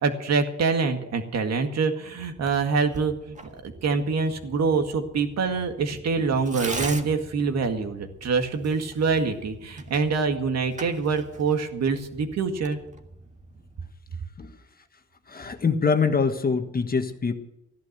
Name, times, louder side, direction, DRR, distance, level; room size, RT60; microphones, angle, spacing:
voice 1, 0.0-3.4 3.6-12.8, right 4 dB, 60° right, 6 dB, 2.0 m, -25 dB
Tearing, 2.4-13.9, right 2 dB, 25° right, 1.8 m, -42 dB
voice 2, 15.3-17.3, left 5 dB, 30° left, 6 dB, 1.5 m, -24 dB
14.5 x 11.5 x 6.8 m, 0.85 s
cardioid pair, 90°, 30 cm